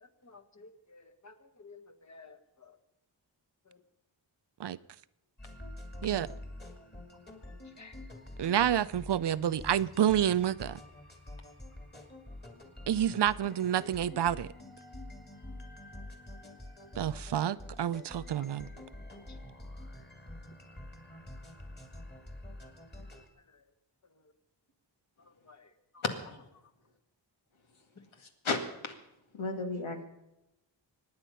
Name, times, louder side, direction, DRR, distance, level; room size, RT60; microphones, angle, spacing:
voice 1, 0.0-2.8 3.7-3.8 7.6-8.0 18.4-18.5 19.3-19.4 23.5-23.6 25.2-26.0 28.0-28.1, left 4 dB, 35° left, 8 dB, 1.5 m, -55 dB
sound 1, 5.4-23.3, left 1 dB, 20° left, 2.6 m, -47 dB
voice 2, 8.4-10.8 12.9-14.5 17.0-18.7, right 10 dB, 60° right, 16 dB, 0.6 m, -29 dB
voice 3, 28.4-28.9 29.3-30.0, left 3 dB, 90° left, 4 dB, 2.2 m, -33 dB
24.5 x 9.8 x 5.6 m, 0.88 s
wide cardioid pair, 105°, 46 cm